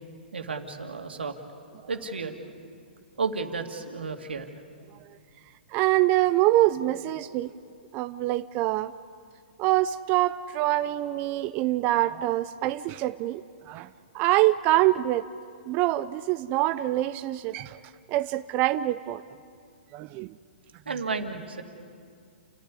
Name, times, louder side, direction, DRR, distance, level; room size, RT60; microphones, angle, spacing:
voice 1, 0.3-1.4 1.9-2.4 3.2-4.5 20.9-21.6, right 4 dB, 90° right, 4 dB, 2.4 m, -32 dB
voice 2, 5.7-7.5 7.9-8.9 9.6-13.4 13.7-13.9 14.1-15.3 15.6-17.8 18.1-19.2 19.9-20.4, right 16 dB, 35° right, 12 dB, 0.5 m, -25 dB
29.5 x 13.5 x 9.8 m, 2.3 s
hypercardioid pair, 130°, 6 cm